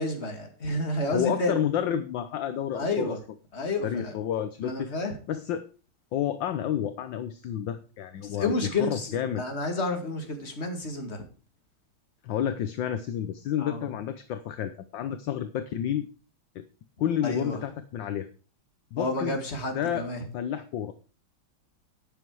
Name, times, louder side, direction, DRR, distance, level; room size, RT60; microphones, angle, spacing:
voice 1, 0.0-1.6 2.7-3.2 3.5-4.1 4.6-5.1 8.2-11.2 13.6-13.8 17.2-17.6 19.0-20.2, left 2 dB, 30° left, 4 dB, 2.5 m, -30 dB
voice 2, 1.1-3.2 3.8-4.9 5.3-5.6 6.1-9.4 12.2-16.1 16.5-16.6 17.0-18.3 18.9-19.4 19.7-20.1 20.3-20.9, left 10 dB, 70° left, 10 dB, 1.4 m, -30 dB
12.0 x 8.2 x 4.7 m, 0.37 s
omnidirectional pair, 2.3 m